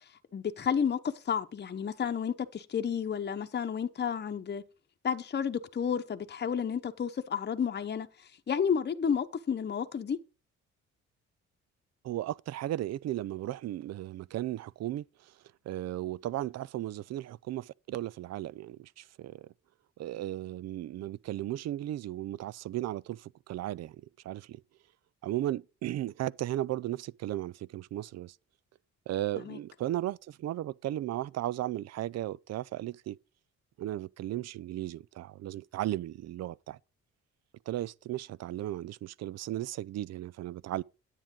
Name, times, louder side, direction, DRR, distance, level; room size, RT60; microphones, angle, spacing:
voice 1, 0.3-4.6 5.0-10.2 29.4-29.6, left 7 dB, 35° left, 0.9 m, -31 dB
voice 2, 12.0-15.3 15.7-19.5 20.0-24.6 25.2-28.4 29.1-33.2 33.8-36.8 37.7-40.8, right 14 dB, 60° right, 0.5 m, -35 dB
9.8 x 8.9 x 3.8 m
cardioid pair, 90°, 30 cm